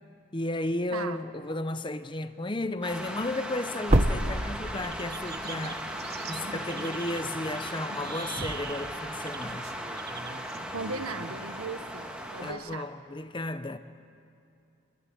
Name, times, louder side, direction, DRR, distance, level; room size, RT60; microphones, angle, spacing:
voice 1, 0.3-5.8 6.3-9.7 12.4-13.8, left 2 dB, 20° left, 0.8 m, -34 dB
voice 2, 0.9-1.2 10.7-12.9, right 4 dB, 90° right, 1.5 m, -37 dB
sound 1, 2.8-12.5, right 1 dB, 5° right, 2.3 m, -37 dB
sound 2, 2.9-3.0 3.4-3.5 3.8-5.4 6.0-6.1 8.0-11.6 12.3-12.4, right 1 dB, 30° right, 1.0 m, -31 dB
sound 3, 4.8-11.7, right 5 dB, 45° right, 1.3 m, -44 dB
28.5 x 21.0 x 10.0 m
head